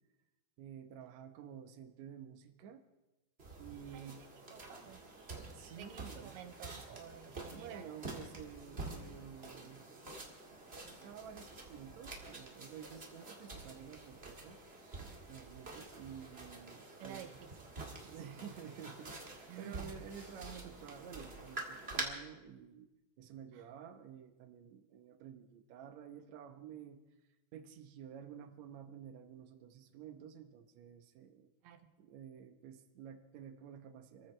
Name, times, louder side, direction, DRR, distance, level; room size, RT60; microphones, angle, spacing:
voice 1, 0.6-2.8 3.6-4.2 5.5-6.4 7.3-9.9 10.7-14.6 15.3-17.3 17.9-22.9 23.2-27.0 27.5-31.5 32.0-34.3, right 8 dB, 70° right, 7 dB, 1.8 m, -51 dB
sound 1, 3.4-22.0, right 3 dB, 40° right, 0.9 m, -48 dB
voice 2, 4.5-5.0 5.8-7.9 17.0-17.7 18.0-18.2 19.5-20.1 23.5-23.6 31.6-31.9, right 9 dB, 85° right, 8 dB, 3.0 m, -52 dB
27.5 x 14.5 x 3.3 m, 1.0 s
omnidirectional pair, 4.4 m